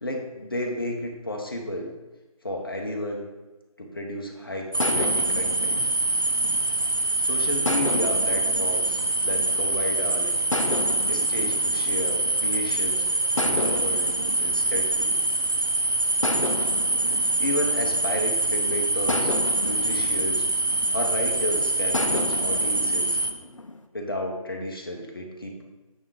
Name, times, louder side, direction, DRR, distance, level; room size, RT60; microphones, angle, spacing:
voice 1, 0.0-1.9 2.4-3.2 3.8-5.8 7.2-10.3 11.0-13.1 13.4-14.1 14.4-15.2 17.0-20.5 20.9-23.2 23.9-25.6, left 1 dB, 40° left, 2 dB, 1.0 m, -32 dB
sound 1, 4.7-23.3, right 2 dB, 35° right, 0.5 m, -25 dB
sound 2, 4.8-7.1 7.7-9.9 10.5-12.8 13.4-15.6 16.2-18.5 19.1-21.3 21.9-23.8, left 2 dB, 55° left, 0.6 m, -33 dB
8.7 x 3.6 x 4.9 m, 1.2 s
figure-of-eight pair, 160°, 19 cm